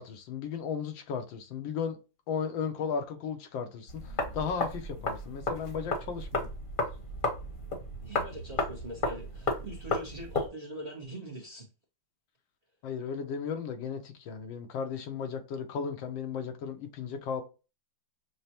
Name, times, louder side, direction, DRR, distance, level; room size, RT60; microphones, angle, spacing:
voice 1, 0.0-2.0 2.3-6.5 12.8-17.4, left 6 dB, 90° left, 1.6 m, -35 dB
sound 1, 3.9-10.5, left 2 dB, 35° left, 0.9 m, -33 dB
voice 2, 8.0-11.7, right 1 dB, 30° right, 0.7 m, -42 dB
6.4 x 2.2 x 2.8 m
omnidirectional pair, 2.0 m